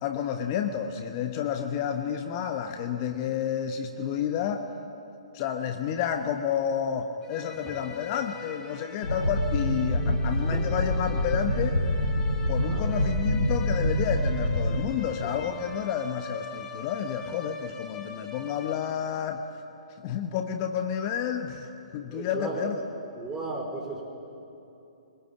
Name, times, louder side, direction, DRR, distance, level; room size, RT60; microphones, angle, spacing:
voice 1, 0.0-4.7 5.3-11.8 12.5-19.4 20.0-22.8, left 8 dB, 35° left, 7 dB, 1.1 m, -30 dB
sound 1, 7.2-19.3, left 4 dB, 20° left, 2.7 m, -42 dB
sound 2, 9.0-14.8, left 1 dB, 80° left, 3.2 m, -26 dB
voice 2, 10.3-10.6 12.6-13.0 15.2-15.3 21.9-22.7 23.2-24.0, right 3 dB, 10° right, 0 dB, 4.6 m, -36 dB
24.0 x 21.5 x 8.7 m, 2.9 s
figure-of-eight pair, 125°, 3 cm